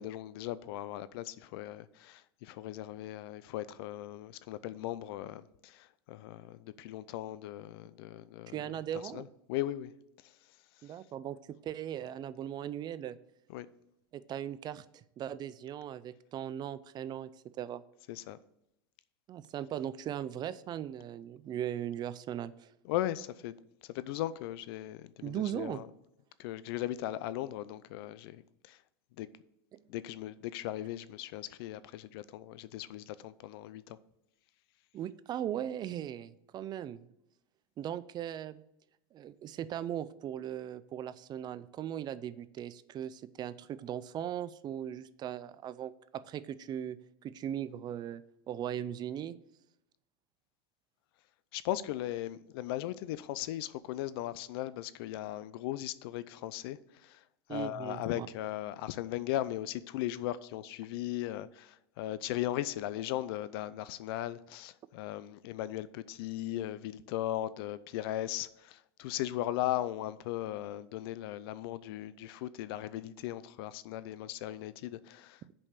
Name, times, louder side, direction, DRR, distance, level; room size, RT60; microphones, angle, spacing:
voice 1, 0.0-8.6 9.1-9.9 13.5-13.7 18.1-18.4 22.8-23.5 23.9-25.9 26.4-28.8 29.2-29.3 29.9-34.0 51.5-57.2 57.5-75.4, left 13 dB, 70° left, 0.5 m, -38 dB
voice 2, 8.5-9.3 10.8-11.4 11.6-13.2 14.1-17.8 19.3-22.7 25.2-25.8 34.9-37.1 37.8-38.6 39.1-47.0 47.2-49.3 57.5-58.3, right 10 dB, 35° right, 0.4 m, -38 dB
7.0 x 5.4 x 6.6 m
supercardioid pair, 120°, 13 cm